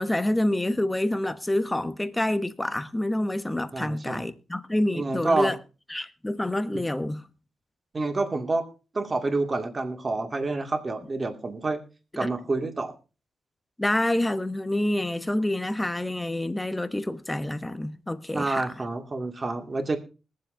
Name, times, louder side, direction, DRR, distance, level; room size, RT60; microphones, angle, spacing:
voice 1, 0.0-5.6 5.9-7.2 12.2-12.3 13.8-18.6, left 1 dB, 15° left, 1.1 m, -27 dB
voice 2, 3.7-4.3 4.9-5.5 7.9-8.7 8.9-11.8 12.2-12.9 18.3-20.0, right 3 dB, 35° right, 2.3 m, -28 dB
21.0 x 7.5 x 3.8 m
cardioid pair, 75°, 0 cm